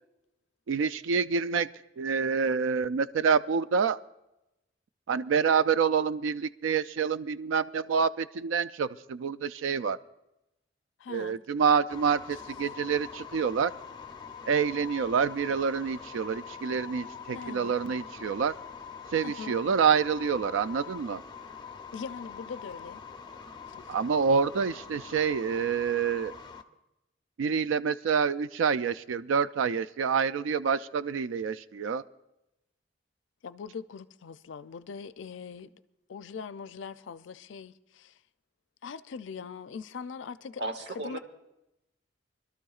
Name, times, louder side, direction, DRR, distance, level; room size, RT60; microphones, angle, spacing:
voice 1, 0.7-1.7 2.0-4.0 5.1-10.0 11.1-13.7 14.5-18.5 19.1-21.2 23.9-26.4 27.4-32.0, right 6 dB, 85° right, 0.4 m, -27 dB
voice 2, 11.0-11.4 17.3-17.8 19.2-19.6 21.9-23.0 23.7-24.0 33.4-35.7 36.1-38.2 38.8-40.6 41.0-41.2, left 5 dB, 75° left, 0.4 m, -41 dB
sound 1, 11.9-26.6, left 6 dB, 20° left, 0.5 m, -44 dB
voice 3, 40.6-41.2, right 2 dB, 60° right, 1.0 m, -35 dB
25.0 x 12.5 x 2.4 m
head